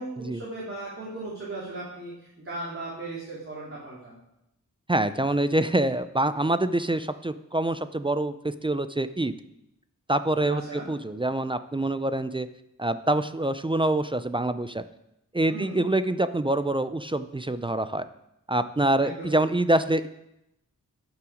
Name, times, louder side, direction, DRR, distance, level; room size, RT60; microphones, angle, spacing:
voice 1, 0.0-4.2 10.4-10.9 15.5-15.8 19.0-19.3, right 2 dB, 40° right, -7 dB, 3.4 m, -37 dB
voice 2, 4.9-9.3 10.1-12.5 12.8-14.8 15.3-18.0 18.5-20.1, right 1 dB, 15° right, 12 dB, 0.4 m, -25 dB
11.5 x 5.9 x 5.0 m, 0.85 s
wide cardioid pair, 65°, 32 cm